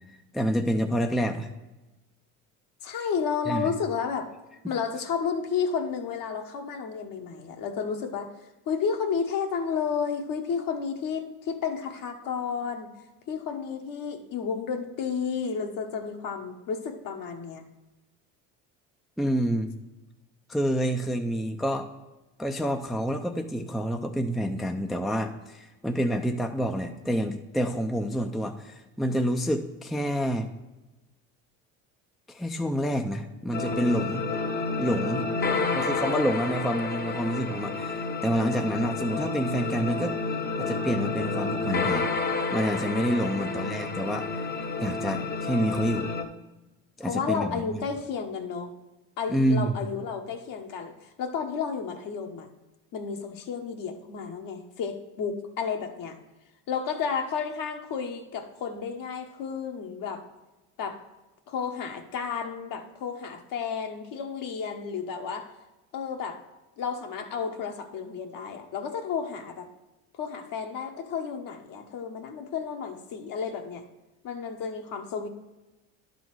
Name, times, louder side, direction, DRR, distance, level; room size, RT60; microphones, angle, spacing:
voice 1, 0.3-1.5 3.5-3.7 19.2-19.7 20.5-21.9 22.4-30.5 32.3-34.2 34.8-35.2 35.7-40.1 40.6-42.1 42.5-44.5 44.8-46.1 47.0-47.8 49.3-49.7, equal, ahead, 5 dB, 0.5 m, -28 dB
voice 2, 2.8-4.3 4.7-8.3 8.7-12.9 13.3-17.6 35.3-36.0 43.2-43.6 47.0-48.7 49.2-52.5 52.9-56.2 56.7-60.2 60.8-61.0 61.5-65.5 65.9-66.4 66.8-69.7 70.1-73.8 74.2-75.3, left 6 dB, 55° left, 4 dB, 1.2 m, -32 dB
sound 1, 33.5-46.2, left 3 dB, 25° left, 0.8 m, -30 dB
11.0 x 4.1 x 4.6 m, 1.1 s
supercardioid pair, 85°, 39 cm